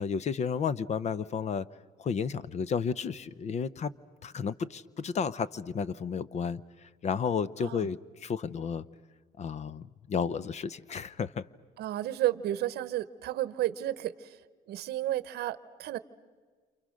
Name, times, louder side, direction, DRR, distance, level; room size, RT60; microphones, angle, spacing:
voice 1, 0.0-1.7 2.0-3.9 4.2-6.6 7.0-8.8 9.4-11.4, left 6 dB, 40° left, 17 dB, 0.7 m, -32 dB
voice 2, 11.8-14.4 14.7-16.0, right 13 dB, 70° right, 15 dB, 0.9 m, -32 dB
28.5 x 28.0 x 6.4 m, 1.5 s
cardioid pair, 110°, 17 cm